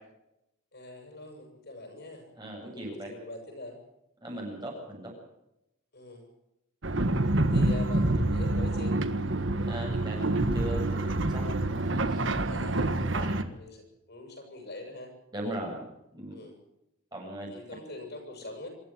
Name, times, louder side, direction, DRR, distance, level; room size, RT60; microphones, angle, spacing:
voice 1, 0.7-2.3 2.7-3.8 5.9-6.3 7.4-9.0 12.4-12.9 13.5-15.1 16.3-16.6 17.5-18.7, left 2 dB, 50° left, 4 dB, 7.8 m, -43 dB
voice 2, 2.4-3.1 4.2-5.1 7.5-7.6 9.7-11.4 11.9-12.3 13.1-13.4 15.3-15.8 16.1-16.4 17.1-17.5, right 1 dB, 20° right, -1 dB, 7.9 m, -38 dB
sound 1, 6.8-13.4, right 2 dB, 55° right, 1.5 m, -27 dB
27.0 x 15.0 x 7.7 m, 0.84 s
head